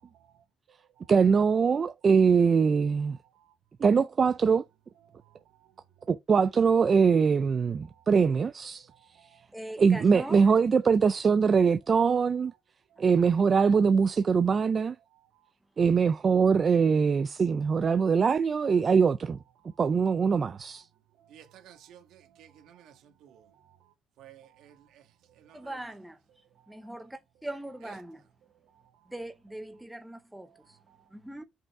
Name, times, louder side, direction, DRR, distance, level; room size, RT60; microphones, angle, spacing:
voice 1, 1.1-3.2 3.8-4.6 6.1-8.9 9.8-12.5 13.0-15.0 15.8-19.4 19.8-20.9, right 5 dB, 30° right, 0.4 m, -23 dB
voice 2, 5.1-5.4 6.0-6.1 7.9-8.0 8.9-9.4 12.9-13.0 21.2-23.8 24.2-25.0 25.3-25.8 30.5-30.6 30.9-31.0, right 10 dB, 75° right, 1.6 m, -56 dB
voice 3, 9.5-10.4 13.0-13.3 25.5-26.2 26.7-28.2 29.1-30.8 31.1-31.4, right 1 dB, 5° right, 0.7 m, -41 dB
5.9 x 5.4 x 4.7 m
cardioid pair, 150°, 0 cm